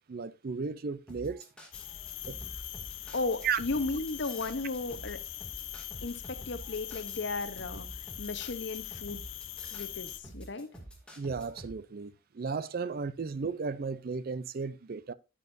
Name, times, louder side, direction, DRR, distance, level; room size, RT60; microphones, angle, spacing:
voice 1, 0.1-1.4 2.3-2.4 3.4-3.6 11.2-15.1, right 5 dB, 50° right, 0.5 m, -34 dB
sound 1, 1.1-11.7, right 1 dB, 5° left, 2.3 m, -48 dB
sound 2, 1.7-10.2, left 11 dB, 85° left, 0.8 m, -42 dB
voice 2, 3.1-5.2 6.0-7.9 8.2-9.2 9.7-10.7, left 3 dB, 60° left, 0.9 m, -35 dB
9.9 x 9.2 x 2.6 m
head